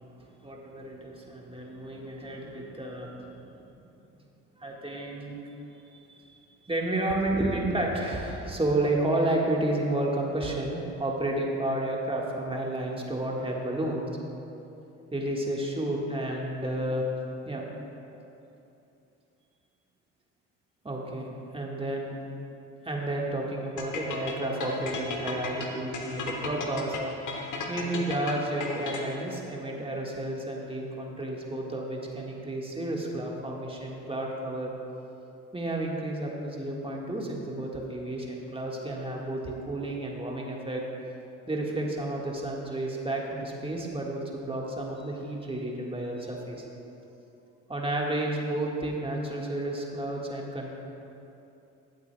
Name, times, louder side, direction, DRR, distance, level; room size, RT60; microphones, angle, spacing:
voice 1, 0.4-3.5 4.6-5.4 5.9-6.3 6.6-14.1 15.1-17.1 17.4-17.6 20.8-22.1 22.8-26.9 27.7-34.7 35.5-40.8 41.5-46.6 47.7-50.7, right 1 dB, 15° right, -2 dB, 1.5 m, -31 dB
sound 1, 23.8-29.3, left 4 dB, 55° left, 1.4 m, -35 dB
15.0 x 8.2 x 2.2 m, 2.8 s
hypercardioid pair, 60°, 36 cm